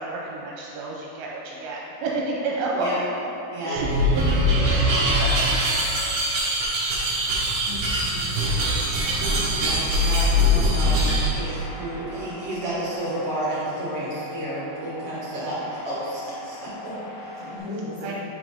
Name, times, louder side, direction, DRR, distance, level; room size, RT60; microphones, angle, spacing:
voice 1, 0.0-2.9 3.6-3.9 4.1-4.3 4.6-5.5 18.0-18.1, right 3 dB, 85° right, -3 dB, 2.8 m, -30 dB
sound 1, 3.7-11.3, equal, 65° right, 1.6 m, -22 dB
voice 2, 7.7-8.3 11.4-12.3 17.4-18.1, left 1 dB, 80° left, -11 dB, 1.5 m, -37 dB
voice 3, 9.6-17.4, right 1 dB, 50° right, -10 dB, 1.9 m, -32 dB
sound 2, 11.1-17.6, equal, 65° left, 2.4 m, -40 dB
9.0 x 5.0 x 3.8 m, 2.9 s
omnidirectional pair, 5.1 m